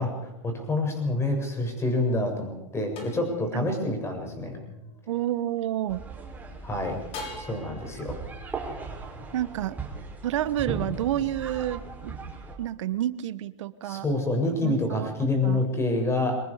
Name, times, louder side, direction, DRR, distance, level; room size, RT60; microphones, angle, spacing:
voice 1, 0.0-4.6 6.6-7.0 7.4-8.2 13.8-16.3, left 2 dB, 15° left, 4 dB, 7.3 m, -27 dB
sound 1, 0.8-6.1 7.1-10.5, left 3 dB, 40° left, 6.8 m, -47 dB
voice 2, 5.1-6.0 9.3-9.8 10.2-12.2 12.6-14.0 14.6-15.1 15.4-15.6, right 12 dB, 70° right, 15 dB, 1.4 m, -29 dB
sound 2, 5.9-12.5, right 4 dB, 10° right, 6.0 m, -38 dB
24.0 x 21.0 x 5.0 m, 0.91 s
hypercardioid pair, 120°, 16 cm